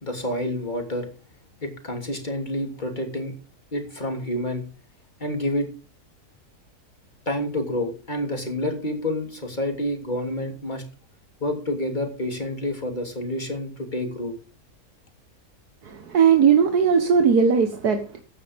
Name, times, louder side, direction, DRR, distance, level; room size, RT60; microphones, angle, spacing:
voice 1, 0.0-1.1 1.6-3.3 3.7-4.6 5.2-5.7 7.3-10.8 11.4-14.3, left 1 dB, 30° left, 3.1 m, -28 dB
voice 2, 15.8-18.2, right 6 dB, 80° right, 1.9 m, -18 dB
15.0 x 9.5 x 3.6 m
omnidirectional pair, 1.6 m